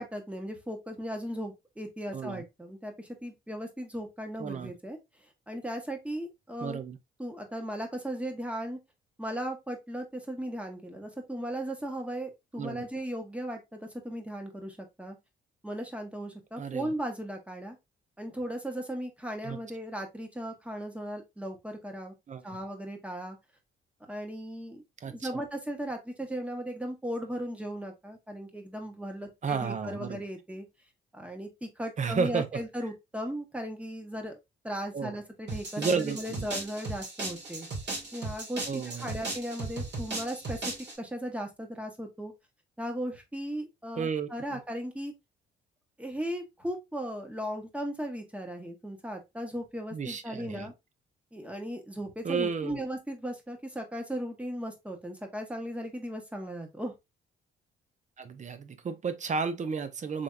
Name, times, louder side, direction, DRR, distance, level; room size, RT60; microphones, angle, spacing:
voice 1, 0.0-5.0 5.5-6.8 7.2-8.8 9.2-15.2 15.6-17.8 18.2-22.1 22.4-23.4 24.1-30.7 31.1-34.3 34.6-37.7 38.1-40.6 41.0-42.3 42.8-45.1 46.0-50.7 51.3-56.9, equal, 5° right, 1.2 m, -37 dB
voice 2, 2.1-2.4 4.4-4.7 6.6-7.0 12.6-12.8 16.6-16.9 19.4-19.6 22.3-22.6 25.0-25.4 29.4-30.2 32.0-32.5 34.9-35.1 35.8-36.5 38.7-39.3 44.0-44.6 49.9-50.7 52.2-52.8 58.2-60.2, right 5 dB, 40° right, 0.7 m, -32 dB
sound 1, 35.5-41.0, right 2 dB, 60° right, 2.2 m, -37 dB
3.6 x 3.4 x 2.5 m
cardioid pair, 90°, 20 cm